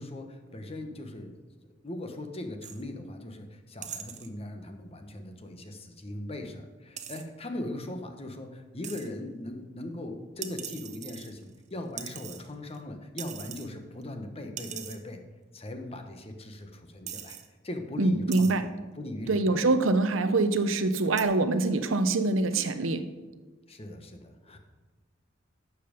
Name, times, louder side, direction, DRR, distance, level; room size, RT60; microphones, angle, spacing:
voice 1, 0.0-1.4 1.8-15.2 15.5-17.4 17.6-18.7 18.9-19.6 23.7-24.6, left 1 dB, 30° left, 6 dB, 1.0 m, -39 dB
sound 1, 2.6-2.8 3.8-4.3 7.0-7.2 8.8-9.1 10.4-11.6 12.0-12.8 13.2-13.7 14.0-14.1 14.6-15.0 16.0-16.1 16.6-16.7 17.1-17.5 18.3-18.5 19.4-19.7 21.2-21.3, right 9 dB, 40° right, 0.8 m, -41 dB
voice 2, 18.0-18.7 19.3-23.1, right 3 dB, 85° right, 10 dB, 0.8 m, -25 dB
11.0 x 7.3 x 5.1 m, 1.2 s
head